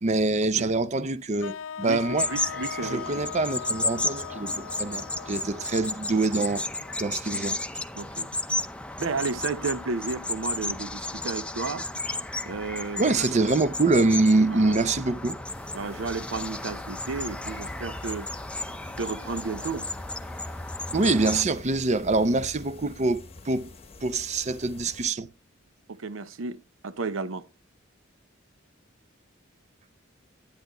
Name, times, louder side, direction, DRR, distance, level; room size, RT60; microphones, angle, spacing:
voice 1, 0.0-2.3 2.8-6.6 7.0-7.6 13.0-15.4 20.9-23.7 24.0-25.3, right 3 dB, 35° right, 0.6 m, -25 dB
sound 1, 1.4-7.5, left 7 dB, 80° left, 0.4 m, -40 dB
sound 2, 2.2-21.4, left 2 dB, 5° left, 0.6 m, -33 dB
voice 2, 2.3-3.3 8.0-8.3 9.0-11.9 12.4-13.3 14.5-14.8 15.7-18.3 19.0-19.9 25.9-27.5, right 4 dB, 70° right, 0.7 m, -33 dB
sound 3, 15.4-25.1, left 2 dB, 30° left, 1.0 m, -47 dB
10.5 x 10.5 x 3.0 m
head